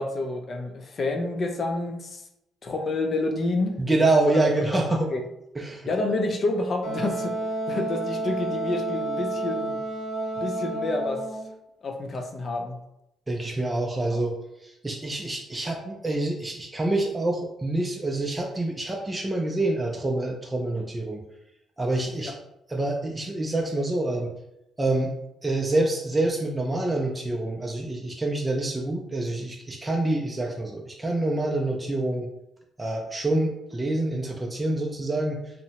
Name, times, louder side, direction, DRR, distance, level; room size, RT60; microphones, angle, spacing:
voice 1, 0.0-2.2 2.6-3.8 4.2-4.4 4.7-5.2 5.9-7.4 7.7-9.8 10.4-11.2 11.8-12.8 14.1-14.2 22.2-22.4, left 2 dB, 45° left, 4 dB, 0.4 m, -28 dB
voice 2, 3.8-5.1 5.6-5.9 13.3-14.3 14.6-21.2 21.8-22.3 22.7-24.3 24.8-25.1 25.4-32.3 32.8-35.4, right 2 dB, 20° right, 0 dB, 0.4 m, -26 dB
Wind instrument woodwind instrument, 6.8-11.5, right 2 dB, 80° left, 0.7 m, -30 dB
2.7 x 2.1 x 2.8 m, 0.84 s
cardioid pair, 90°, 0 cm